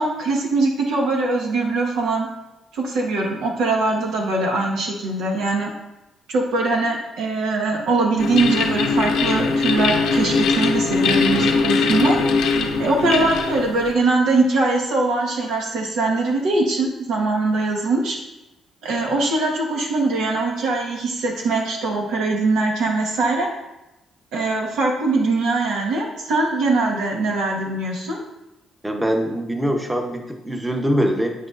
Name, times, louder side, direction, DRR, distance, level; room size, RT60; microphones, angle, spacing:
voice 1, 0.0-2.3 2.7-5.7 6.3-12.2 12.8-18.2 18.8-23.5 24.3-28.2, right 3 dB, 85° right, 0 dB, 1.4 m, -22 dB
sound 1, 8.2-13.9, left 4 dB, 90° left, 0.8 m, -20 dB
voice 2, 28.8-31.5, equal, 10° right, 3 dB, 0.9 m, -23 dB
8.6 x 6.1 x 2.5 m, 0.96 s
cardioid pair, 90°, 0 cm